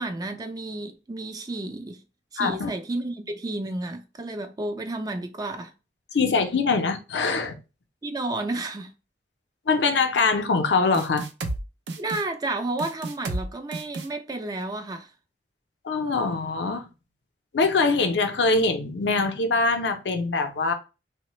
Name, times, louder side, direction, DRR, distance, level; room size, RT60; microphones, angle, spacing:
voice 1, 0.0-2.0 2.3-5.7 8.0-8.9 12.0-15.1, right 2 dB, 20° right, 0.3 m, -31 dB
voice 2, 2.4-2.7 6.1-7.6 9.7-11.3 15.8-16.9 17.5-20.7, left 4 dB, 80° left, 0.5 m, -23 dB
sound 1, 10.9-11.6 11.9-12.2 12.8-13.4 13.7-14.1, right 2 dB, 85° right, 0.5 m, -31 dB
3.1 x 2.1 x 2.9 m
head